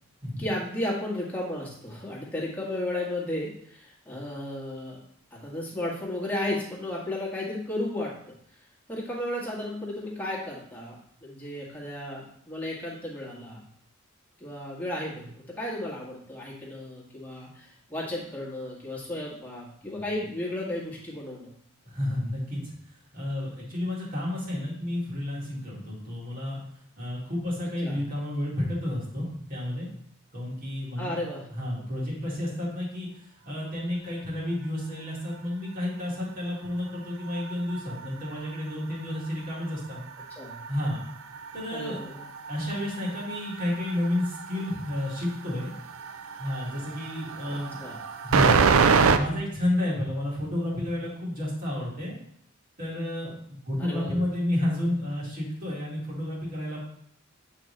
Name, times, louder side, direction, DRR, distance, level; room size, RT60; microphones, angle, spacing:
voice 1, 0.4-5.0 5.3-8.3 8.9-13.6 14.4-21.5 27.8-28.0 31.0-31.5 40.3-40.6 41.7-42.3 47.5-48.0 53.8-54.2, left 1 dB, 10° left, -5 dB, 1.5 m, -34 dB
voice 2, 21.8-22.7 23.1-26.6 27.0-29.9 30.3-31.1 31.5-33.1 33.5-40.0 40.7-41.0 41.5-42.0 42.5-45.7 46.4-47.8 48.2-48.6 48.9-52.2 52.8-56.8, left 1 dB, 45° right, -6 dB, 2.1 m, -31 dB
sound 1, 37.0-39.3 39.7-49.2, right 5 dB, 80° right, 0.4 m, -27 dB
8.1 x 3.8 x 3.2 m, 0.67 s
head